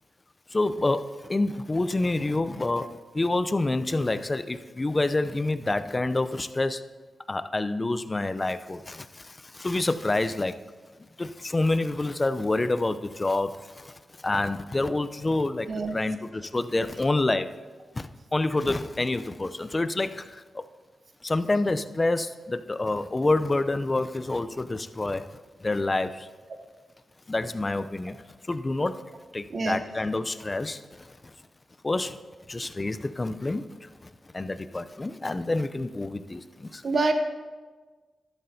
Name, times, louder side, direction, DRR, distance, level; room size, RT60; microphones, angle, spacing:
voice 1, 0.5-6.8 7.3-10.6 11.2-13.9 14.2-17.5 17.9-20.6 21.2-25.3 25.6-26.3 27.3-28.2 28.5-29.0 29.3-31.3 31.8-32.2 32.5-37.1, left 2 dB, 30° left, 11 dB, 0.5 m, -28 dB
voice 2, 15.7-16.0 29.5-29.8 36.8-37.1, right 3 dB, 60° right, 6 dB, 0.9 m, -26 dB
13.0 x 11.5 x 2.8 m, 1.4 s
cardioid pair, 65°, 0 cm